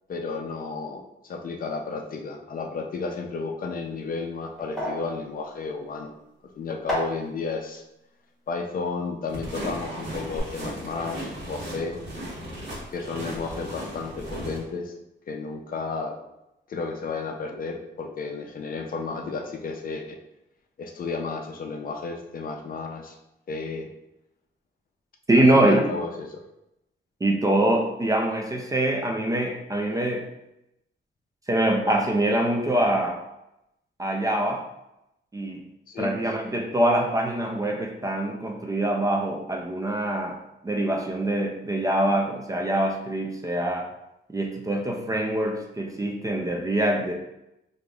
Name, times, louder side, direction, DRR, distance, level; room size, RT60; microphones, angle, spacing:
voice 1, 0.1-6.1 6.6-7.8 8.5-12.0 12.9-14.9 15.3-16.2 16.7-20.2 20.8-23.2 23.5-23.9 25.3-26.4 35.9-36.1, left 4 dB, 50° left, 2 dB, 0.5 m, -32 dB
sound 1, 3.7-9.8 10.1-10.4, equal, ahead, 1.0 m, -36 dB
sound 2, 9.3-14.6, equal, 65° right, 1.3 m, -36 dB
voice 2, 25.3-25.9 27.2-30.3 31.5-33.2 34.0-34.7 35.3-35.6 36.0-40.4 40.6-43.9 44.3-47.1, right 1 dB, 20° right, 1 dB, 0.3 m, -24 dB
4.9 x 2.5 x 2.3 m, 0.87 s
wide cardioid pair, 165°, 19 cm